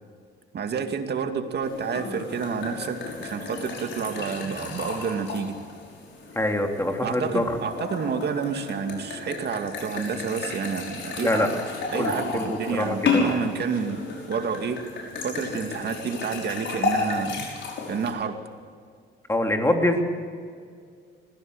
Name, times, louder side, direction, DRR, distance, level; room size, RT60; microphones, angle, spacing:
voice 1, 0.5-5.6 7.0-11.5 11.9-14.8 15.2-17.5 17.9-18.4, right 6 dB, 55° right, 6 dB, 2.4 m, -29 dB
sound 1, 1.6-18.1, left 3 dB, 70° left, 5.8 m, -32 dB
voice 2, 6.3-7.6 11.2-11.5 11.9-13.4 19.3-20.0, left 1 dB, 15° left, 3 dB, 3.3 m, -25 dB
20.5 x 15.5 x 8.2 m, 2.1 s
cardioid pair, 90°, 20 cm